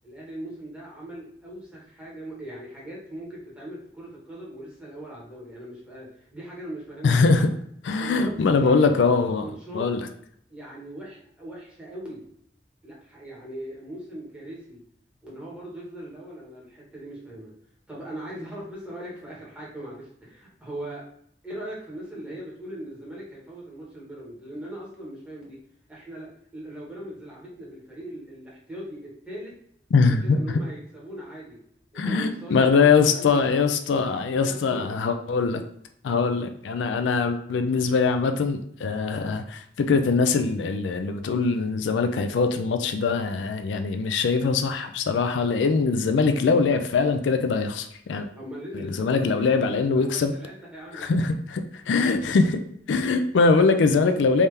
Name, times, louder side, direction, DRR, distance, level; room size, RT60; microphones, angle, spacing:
voice 1, 0.0-7.2 8.0-9.0 9.4-9.9 10.5-12.2 12.8-14.8 15.2-17.5 17.9-21.0 21.4-25.6 25.9-29.5 30.0-31.6 31.9-33.7 34.4-34.9 48.3-51.1, right 1 dB, 5° right, -6 dB, 1.3 m, -40 dB
voice 2, 7.0-7.5 7.8-9.5 9.7-10.1 29.9-30.4 32.0-35.6 36.0-48.3 48.7-50.3 50.9-52.6 52.9-54.5, left 4 dB, 80° left, 7 dB, 0.4 m, -22 dB
3.5 x 2.7 x 3.3 m, 0.69 s
head